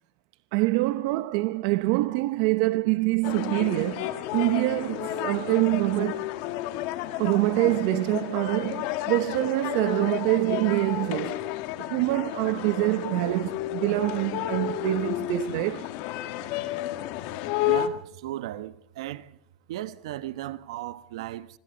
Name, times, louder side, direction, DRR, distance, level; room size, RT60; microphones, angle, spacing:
voice 1, 0.5-6.3 7.2-11.5 11.8-15.9, right 20 dB, 50° right, 0.8 m, -25 dB
sound 1, 3.2-17.9, left 13 dB, 50° left, 1.9 m, -31 dB
Drum, 7.7-9.7, left 10 dB, 70° left, 4.1 m, -49 dB
voice 2, 17.6-19.4 19.7-21.6, right 14 dB, 70° right, 1.3 m, -36 dB
26.5 x 25.5 x 4.1 m
supercardioid pair, 155°, 3 cm